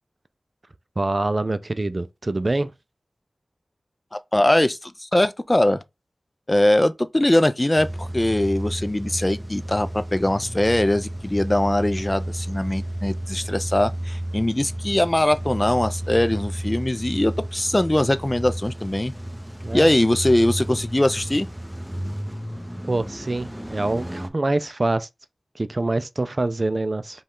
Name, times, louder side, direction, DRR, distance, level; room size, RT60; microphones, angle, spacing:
voice 1, 1.0-2.7 19.6-19.9 22.9-25.1 25.6-27.2, right 2 dB, 45° right, 0.4 m, -25 dB
voice 2, 4.1-5.8 6.5-19.1 19.7-21.5, left 1 dB, 20° left, 0.4 m, -21 dB
Car / Engine starting / Idling, 7.8-24.3, right 1 dB, 5° right, 0.8 m, -32 dB
5.2 x 2.4 x 3.6 m
wide cardioid pair, 60°, 0 cm